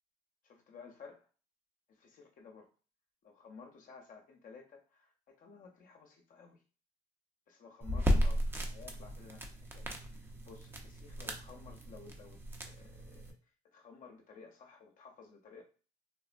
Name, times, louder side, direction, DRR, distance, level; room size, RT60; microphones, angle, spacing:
voice 1, 0.4-1.3 1.9-2.7 3.2-6.6 7.5-12.4 12.6-13.4 13.7-15.6, left 5 dB, 55° left, 2 dB, 0.6 m, -55 dB
sound 1, 7.8-13.3, equal, 15° right, 0.5 m, -35 dB
3.4 x 2.0 x 2.4 m, 0.36 s
cardioid pair, 110°, 17 cm